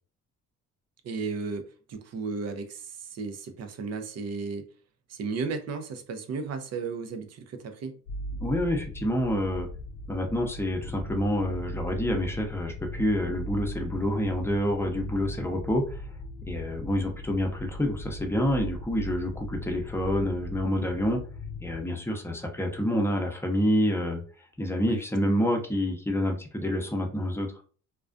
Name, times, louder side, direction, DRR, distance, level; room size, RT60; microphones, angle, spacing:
voice 1, 1.0-4.7 5.1-8.0 24.9-25.0, right 4 dB, 60° right, 0.5 m, -34 dB
sound 1, 8.1-21.8, equal, 60° left, 0.5 m, -38 dB
voice 2, 8.4-9.7 10.1-16.0 16.5-21.2 21.6-24.2 24.6-27.5, equal, 10° left, 0.6 m, -28 dB
2.3 x 2.2 x 2.4 m
cardioid pair, 90°, 30 cm